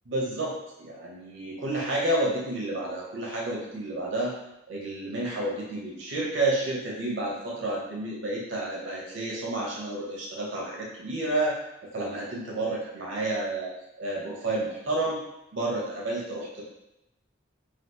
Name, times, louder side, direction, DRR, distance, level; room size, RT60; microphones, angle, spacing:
voice 1, 0.1-0.5 0.8-4.3 4.7-11.6 11.9-13.7 14.0-15.2 15.5-16.6, right 2 dB, 85° right, -4 dB, 0.7 m, -30 dB
2.8 x 2.4 x 3.4 m, 0.90 s
head